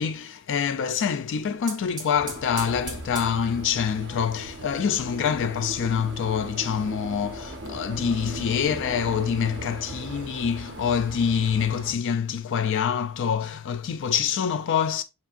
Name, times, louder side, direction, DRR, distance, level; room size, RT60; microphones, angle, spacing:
voice 1, 0.0-15.0, left 7 dB, 60° left, 0.4 m, -26 dB
sound 1, 1.2-11.8, right 4 dB, 20° right, 1.9 m, -46 dB
sound 2, 2.1-11.9, right 2 dB, 55° right, 1.1 m, -38 dB
7.1 x 2.7 x 2.5 m
head